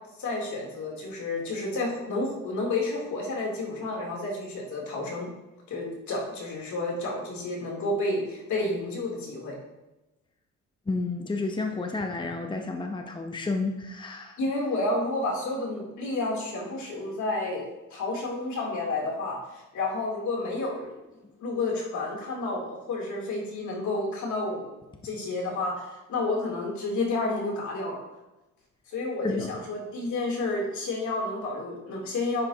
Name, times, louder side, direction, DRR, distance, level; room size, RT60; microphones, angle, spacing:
voice 1, 0.2-5.3 5.7-9.5 14.4-17.6 17.9-20.9 21.4-24.6 25.0-28.0 28.9-32.5, left 2 dB, 70° left, -2 dB, 3.1 m, -30 dB
voice 2, 10.9-14.4 29.2-29.5, left 3 dB, 15° left, 4 dB, 0.8 m, -31 dB
10.0 x 7.7 x 2.8 m, 1.0 s
cardioid pair, 90°, 30 cm